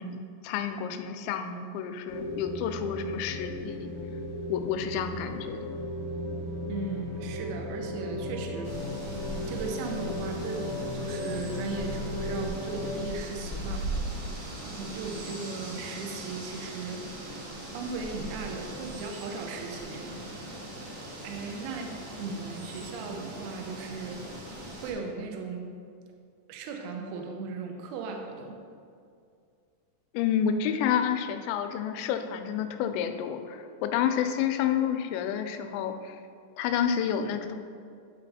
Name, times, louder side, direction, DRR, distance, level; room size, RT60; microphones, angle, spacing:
voice 1, 0.0-3.9 4.5-5.7 30.1-36.2 36.6-37.6, left 8 dB, 85° left, 7 dB, 2.8 m, -29 dB
sound 1, 2.1-13.0, left 1 dB, 60° left, 1.2 m, -35 dB
voice 2, 6.7-8.7 9.5-13.9 14.3-17.5 17.7-20.2 21.2-24.2 24.8-25.7 26.5-28.6, right 4 dB, 80° right, 2 dB, 2.3 m, -37 dB
sound 2, 8.6-24.9, right 1 dB, 55° right, 2.0 m, -39 dB
11.0 x 3.8 x 4.1 m, 2.3 s
omnidirectional pair, 5.1 m